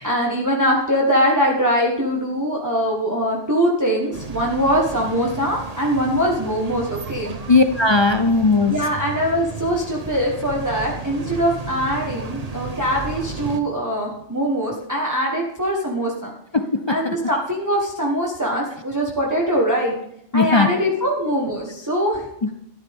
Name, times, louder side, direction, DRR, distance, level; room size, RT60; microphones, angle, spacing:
voice 1, 0.0-7.3 8.7-16.3 16.9-19.9 20.3-22.5, equal, 15° right, -2 dB, 1.4 m, -22 dB
sound 1, 4.1-13.6, right 4 dB, 35° right, 1.0 m, -34 dB
voice 2, 7.5-8.9 16.5-17.1 20.3-20.7 22.4-22.5, left 3 dB, 35° left, 7 dB, 0.4 m, -18 dB
14.0 x 11.0 x 3.6 m, 0.79 s
omnidirectional pair, 1.2 m